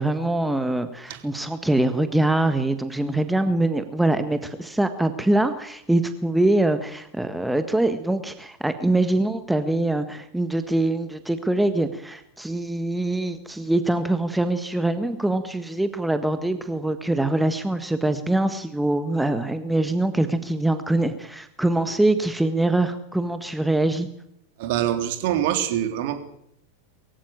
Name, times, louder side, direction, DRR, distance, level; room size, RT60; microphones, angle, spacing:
voice 1, 0.0-24.1, right 2 dB, 5° right, 9 dB, 1.6 m, -23 dB
voice 2, 24.6-26.2, right 11 dB, 50° right, 7 dB, 3.4 m, -24 dB
23.0 x 15.5 x 8.9 m, 0.74 s
figure-of-eight pair, 90°, 0 cm